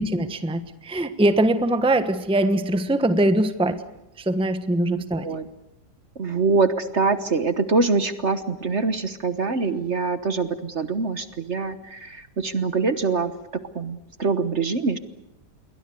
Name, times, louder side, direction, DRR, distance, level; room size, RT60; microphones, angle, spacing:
voice 1, 0.0-3.8 4.2-5.3, right 1 dB, 5° right, 10 dB, 1.1 m, -22 dB
voice 2, 4.9-5.5 6.2-13.3 13.7-15.0, right 4 dB, 45° right, 11 dB, 1.4 m, -24 dB
28.5 x 22.5 x 6.8 m, 0.90 s
omnidirectional pair, 1.8 m